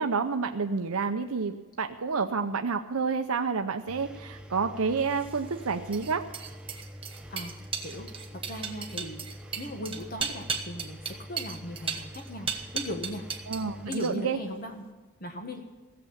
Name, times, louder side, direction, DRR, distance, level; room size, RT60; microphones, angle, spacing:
voice 1, 0.0-6.2 13.5-14.4, right 5 dB, 70° right, 6 dB, 0.7 m, -29 dB
Engine, 3.9-13.9, equal, 5° right, 0.8 m, -45 dB
sound 1, 5.1-13.6 13.9-14.4, right 6 dB, 25° right, 1.2 m, -36 dB
voice 2, 8.3-9.3 9.5-11.0 11.3-12.5 12.7-13.2 13.9-14.9 15.2-15.6, left 1 dB, 40° left, 4 dB, 1.3 m, -38 dB
16.5 x 7.7 x 8.7 m, 1.3 s
head